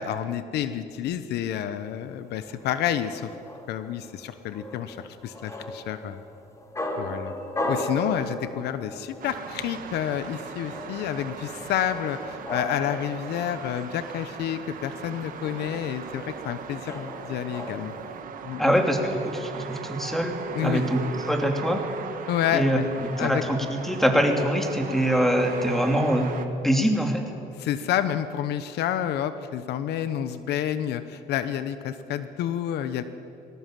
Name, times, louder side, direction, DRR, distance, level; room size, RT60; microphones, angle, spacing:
voice 1, 0.0-3.3 3.7-6.2 7.0-7.3 7.7-17.9 18.4-18.7 20.5-20.9 22.3-22.8 23.2-23.4 27.6-33.0, left 10 dB, 75° left, 12 dB, 1.0 m, -29 dB
sound 1, 1.8-18.2, left 1 dB, 15° left, 2.6 m, -37 dB
sound 2, 9.2-26.5, right 7 dB, 55° right, 1.5 m, -38 dB
voice 2, 18.6-21.0 21.3-21.8 22.5-26.4 26.6-27.2, equal, ahead, 3 dB, 2.7 m, -24 dB
20.0 x 17.5 x 7.6 m, 2.7 s
cardioid pair, 110°, 17 cm